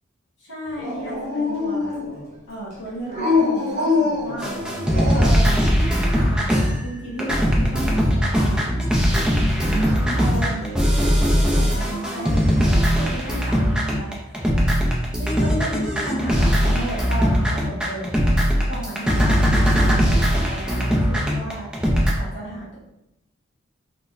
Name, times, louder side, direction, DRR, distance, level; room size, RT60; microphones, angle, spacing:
voice 1, 0.4-2.0 2.5-4.7 5.1-8.7 10.1-10.8 11.5-14.4 15.2-18.1 18.7-21.7 22.1-22.7, right 1 dB, 60° left, -9 dB, 1.4 m, -33 dB
Dog, 0.8-2.3 3.1-5.5, left 3 dB, 35° right, 0.8 m, -24 dB
sound 1, 4.4-22.1, equal, 5° right, 0.3 m, -20 dB
sound 2, 9.3-13.4, equal, 35° left, 0.7 m, -37 dB
3.9 x 2.0 x 2.5 m, 0.85 s
head